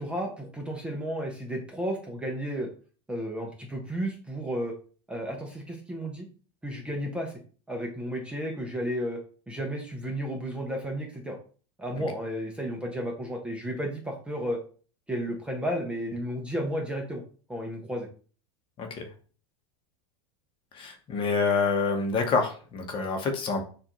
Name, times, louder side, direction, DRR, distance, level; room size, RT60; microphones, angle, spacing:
voice 1, 0.0-2.7 3.1-4.7 5.1-6.3 6.6-7.3 7.7-9.2 9.5-11.4 11.8-14.6 15.1-17.2 17.5-18.1, equal, 5° right, 1 dB, 0.7 m, -33 dB
voice 2, 20.7-23.6, left 4 dB, 35° left, 4 dB, 1.0 m, -27 dB
6.5 x 2.6 x 3.0 m, 0.40 s
supercardioid pair, 140°, 16 cm